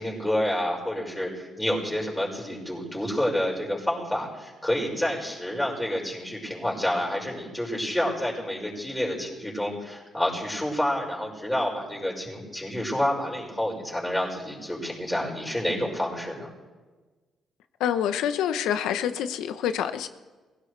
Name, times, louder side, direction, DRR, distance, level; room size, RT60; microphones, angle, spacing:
voice 1, 0.0-16.5, left 1 dB, 5° left, 5.6 m, -29 dB
voice 2, 17.8-20.1, left 9 dB, 90° left, 0.9 m, -27 dB
23.0 x 16.5 x 3.4 m
cardioid pair, 90°, 0 cm